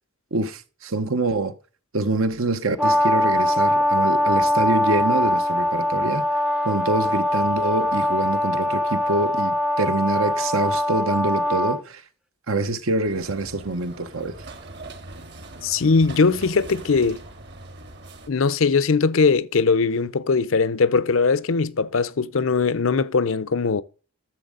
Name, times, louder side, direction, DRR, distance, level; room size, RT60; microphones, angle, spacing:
voice 1, 0.3-1.5 1.9-6.3 6.6-12.0 12.5-14.4, right 2 dB, 70° right, 1.0 m, -25 dB
Brass instrument, 2.8-11.8, left 1 dB, 5° right, 0.6 m, -22 dB
sound 1, 13.1-18.3, right 2 dB, 50° right, 1.8 m, -41 dB
voice 2, 15.6-17.2 18.3-23.8, left 4 dB, 65° left, 0.6 m, -20 dB
11.0 x 7.3 x 3.8 m
head